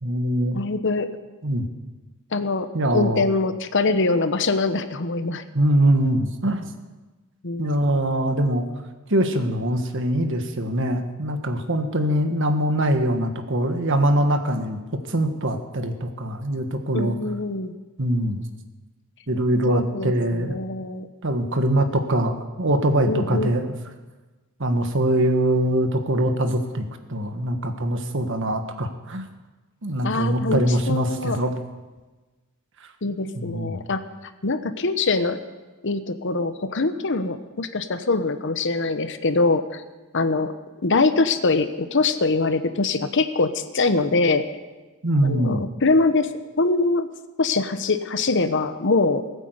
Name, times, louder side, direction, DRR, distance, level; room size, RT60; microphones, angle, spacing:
voice 1, 0.0-0.6 1.4-1.7 2.7-3.2 5.5-6.7 7.6-8.7 9.1-14.8 15.1-17.1 18.0-18.4 19.3-20.6 21.2-23.8 24.6-26.8 27.1-29.2 29.8-31.5 33.3-33.8 45.0-45.6, right 1 dB, 60° right, 7 dB, 1.6 m, -23 dB
voice 2, 0.5-1.1 2.3-5.4 7.4-8.1 16.9-17.7 19.6-21.1 23.1-23.5 30.0-31.4 33.0-34.0 34.4-35.4 35.8-39.8 40.1-40.5 40.8-44.4 45.2-46.3 46.6-47.1 47.4-49.2, left 3 dB, 60° left, 11 dB, 1.0 m, -23 dB
19.5 x 9.1 x 8.0 m, 1.2 s
head